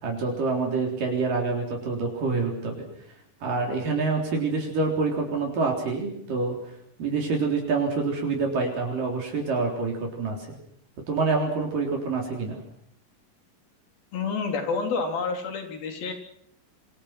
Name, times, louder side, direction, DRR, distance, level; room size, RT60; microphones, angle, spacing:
voice 1, 0.0-2.8 3.4-6.6 7.0-10.6 11.1-12.6, right 4 dB, 70° right, 1 dB, 5.4 m, -27 dB
voice 2, 14.1-16.1, left 4 dB, 85° left, 4 dB, 5.4 m, -28 dB
27.0 x 25.5 x 6.0 m, 0.68 s
omnidirectional pair, 4.1 m